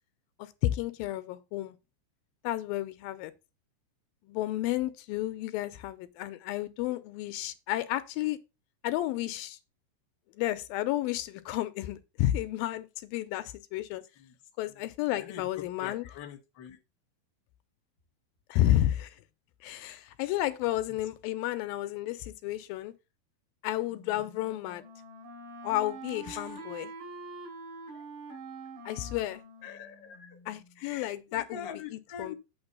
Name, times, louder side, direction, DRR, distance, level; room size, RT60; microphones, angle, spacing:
voice 1, 0.4-1.8 2.4-3.3 4.3-8.4 8.8-9.6 10.3-14.0 14.6-16.1 18.5-19.2 19.6-22.9 23.6-24.8 25.6-26.9 28.9-29.4 30.5-32.4, left 14 dB, 80° left, 2.3 m, -32 dB
voice 2, 15.8-16.8 26.3-26.4 29.6-30.3 30.8-31.1 31.5-32.3, left 8 dB, 55° left, 1.4 m, -43 dB
Wind instrument woodwind instrument, 23.9-30.7, right 3 dB, 60° right, 4.1 m, -46 dB
8.8 x 3.6 x 6.6 m
omnidirectional pair, 4.2 m